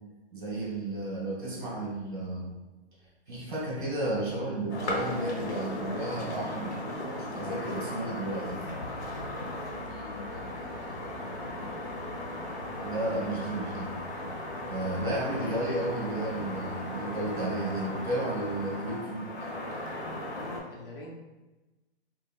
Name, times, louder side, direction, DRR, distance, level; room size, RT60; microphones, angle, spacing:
voice 1, 0.3-2.5 3.3-6.8 7.2-8.6 12.8-13.9 14.7-19.3, right 1 dB, 50° right, -4 dB, 1.3 m, -33 dB
sound 1, 4.7-20.6, left 1 dB, 80° left, 1.0 m, -37 dB
voice 2, 9.7-11.6 20.3-21.1, left 2 dB, 55° left, -2 dB, 0.7 m, -47 dB
3.9 x 2.0 x 2.4 m, 1.1 s
hypercardioid pair, 180°, 33 cm